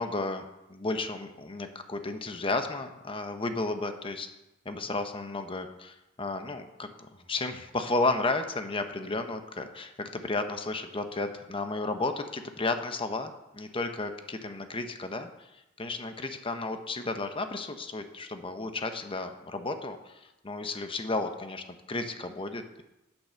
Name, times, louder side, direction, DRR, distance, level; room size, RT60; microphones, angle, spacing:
voice 1, 0.0-4.3 4.6-22.8, left 3 dB, 25° left, 7 dB, 0.9 m, -33 dB
9.2 x 8.5 x 6.8 m, 0.94 s
head